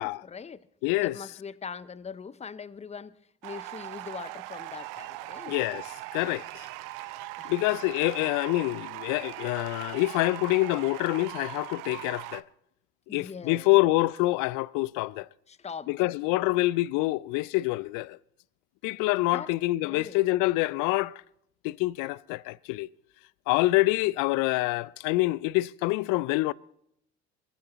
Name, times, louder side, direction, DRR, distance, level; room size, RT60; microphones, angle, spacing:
voice 1, 0.0-0.7 1.0-5.6 7.4-7.5 13.1-13.7 15.5-16.6 19.2-19.5 19.8-20.2, left 6 dB, 20° left, 0.6 m, -42 dB
voice 2, 0.8-1.1 5.5-5.9 6.1-6.7 7.4-12.4 13.1-15.3 15.9-18.2 18.8-21.2 21.6-22.9 23.5-26.5, left 20 dB, 60° left, 0.5 m, -26 dB
sound 1, 3.4-12.4, right 18 dB, 65° right, 0.6 m, -40 dB
23.0 x 15.0 x 3.0 m
hypercardioid pair, 55°, 35 cm